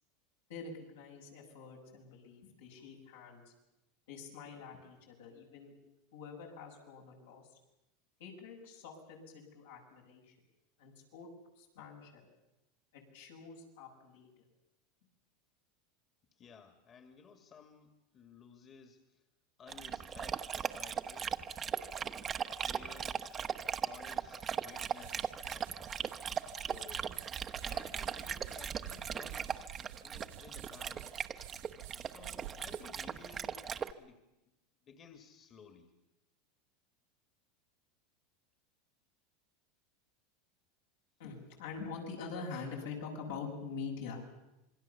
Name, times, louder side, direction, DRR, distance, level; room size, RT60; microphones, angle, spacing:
voice 1, 0.5-3.4 4.1-5.7 6.1-7.4 8.2-10.3 10.8-11.3 11.6-12.2 12.9-14.3 41.2-44.2, left 5 dB, 85° left, 0 dB, 7.4 m, -45 dB
voice 2, 16.3-19.2 19.6-21.4 22.6-25.9 26.6-27.1 27.5-29.7 30.0-31.1 32.0-33.7 34.0-34.2 34.8-35.9, left 6 dB, 35° left, 6 dB, 2.3 m, -56 dB
Dog, 19.7-33.9, right 7 dB, 30° right, 1.1 m, -39 dB
sound 1, 24.4-33.8, right 14 dB, 75° right, 2.4 m, -52 dB
27.0 x 22.0 x 7.2 m, 0.93 s
supercardioid pair, 110°, 0 cm